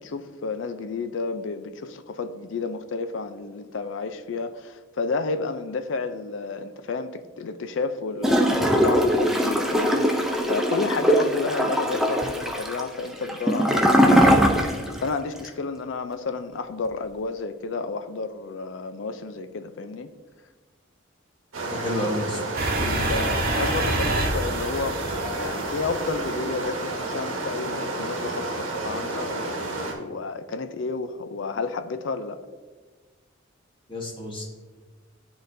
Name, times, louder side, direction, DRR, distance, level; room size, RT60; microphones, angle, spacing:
voice 1, 0.0-20.1 22.8-32.4, left 4 dB, 60° left, 10 dB, 0.4 m, -31 dB
Gurgling / Toilet flush, 8.2-15.1 15.4-15.5, equal, ahead, 0.4 m, -21 dB
sound 1, 21.5-29.9, right 2 dB, 75° right, 1.1 m, -30 dB
voice 2, 21.6-22.4 33.9-34.4, equal, 25° left, -1 dB, 1.1 m, -30 dB
sound 2, 22.6-26.5, right 2 dB, 45° right, 0.8 m, -27 dB
10.5 x 3.8 x 2.6 m, 1.4 s
head